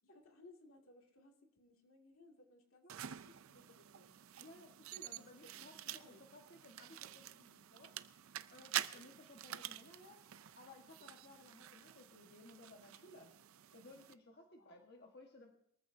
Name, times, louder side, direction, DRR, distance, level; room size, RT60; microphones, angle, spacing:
voice 1, 0.0-4.2 5.4-6.2 14.6-14.7, left 2 dB, 85° left, 2 dB, 2.4 m, -63 dB
sound 1, 2.9-14.1, right 11 dB, 80° right, 0.5 m, -48 dB
voice 2, 4.4-7.9 8.5-10.2 10.6-13.3 13.7-15.6, left 2 dB, 50° left, 2 dB, 1.5 m, -59 dB
22.5 x 14.0 x 2.7 m, 0.71 s
head